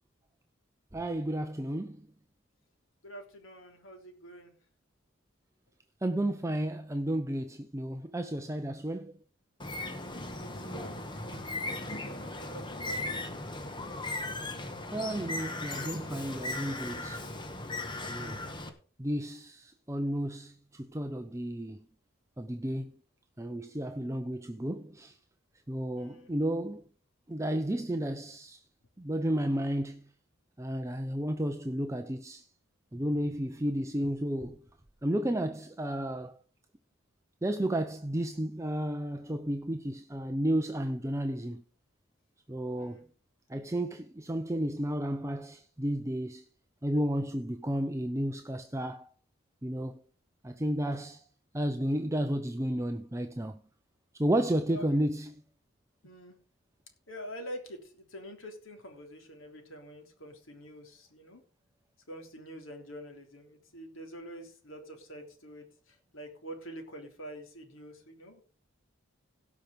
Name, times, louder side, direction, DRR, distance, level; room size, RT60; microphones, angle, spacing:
voice 1, 0.9-2.1 6.0-9.1 14.9-17.2 18.1-18.4 19.0-21.8 22.4-22.9 23.4-25.2 25.7-26.8 27.3-28.6 29.0-30.0 30.6-32.5 32.9-34.6 35.0-36.4 37.4-41.6 42.5-43.1 43.5-46.5 46.8-49.1 49.6-49.9 50.4-51.2 51.5-53.6 54.1-55.3, right 1 dB, 15° right, 0.6 m, -32 dB
voice 2, 3.0-4.5 10.4-13.2 18.5-18.7 25.9-26.3 42.8-43.1 54.7-55.0 56.0-56.4 57.1-61.4 62.1-68.4, equal, 85° left, 3.5 m, -46 dB
Bird, 9.6-18.7, left 2 dB, 25° left, 1.4 m, -37 dB
17.0 x 5.9 x 5.1 m
head